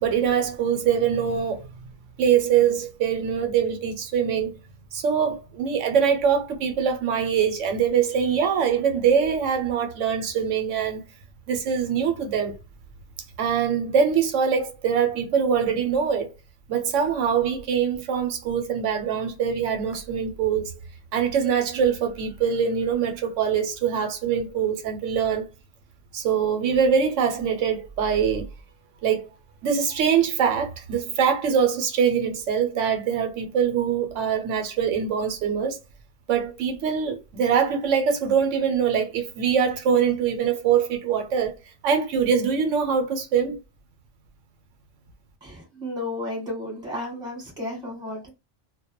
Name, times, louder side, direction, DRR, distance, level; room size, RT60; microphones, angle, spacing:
voice 1, 0.0-1.7 2.2-4.6 4.9-11.0 11.5-12.5 13.4-16.3 16.7-20.7 21.1-25.5 26.1-28.5 29.0-29.3 29.6-35.8 36.3-41.6 41.8-43.6, right 7 dB, 85° right, 1.0 m, -23 dB
voice 2, 45.4-48.3, left 1 dB, 5° right, 1.1 m, -33 dB
2.2 x 2.1 x 2.9 m
omnidirectional pair, 1.2 m